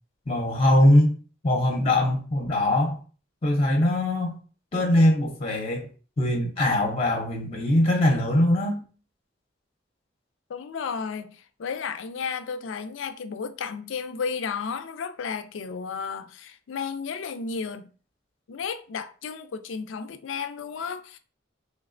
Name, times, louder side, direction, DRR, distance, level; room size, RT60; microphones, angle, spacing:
voice 1, 0.3-1.1 1.4-3.0 3.4-4.4 4.7-5.9 6.2-8.8, left 1 dB, 30° left, 0.6 m, -21 dB
voice 2, 10.5-17.9 18.5-21.2, left 5 dB, 85° left, 0.4 m, -33 dB
3.3 x 3.2 x 2.5 m
head